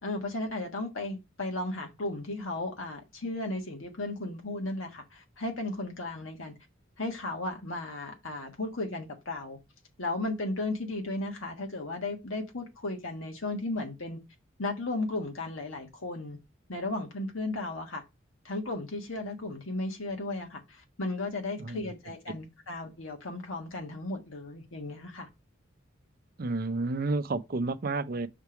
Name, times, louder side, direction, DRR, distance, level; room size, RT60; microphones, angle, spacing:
voice 1, 0.0-6.5 7.0-9.6 10.0-14.2 14.6-16.4 16.7-18.0 18.4-25.3, left 2 dB, 90° left, 1.4 m, -35 dB
voice 2, 21.6-21.9 26.4-28.3, right 3 dB, 50° right, 0.5 m, -31 dB
5.8 x 3.3 x 5.7 m
head